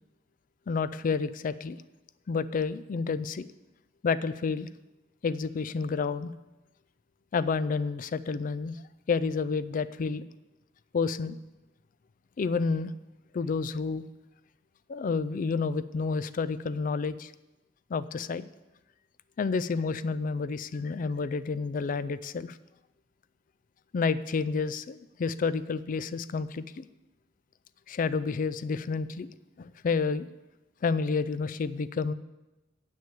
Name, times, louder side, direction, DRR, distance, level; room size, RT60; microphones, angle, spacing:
voice 1, 0.7-1.8 2.3-3.5 4.0-4.7 5.2-6.3 7.3-8.8 9.1-10.2 10.9-11.4 12.4-12.9 13.3-14.0 14.9-17.3 17.9-18.5 19.4-22.6 23.9-26.9 27.9-29.3 29.6-30.3 30.8-32.1, left 4 dB, 45° left, 15 dB, 0.4 m, -30 dB
8.4 x 6.3 x 7.3 m, 1.0 s
head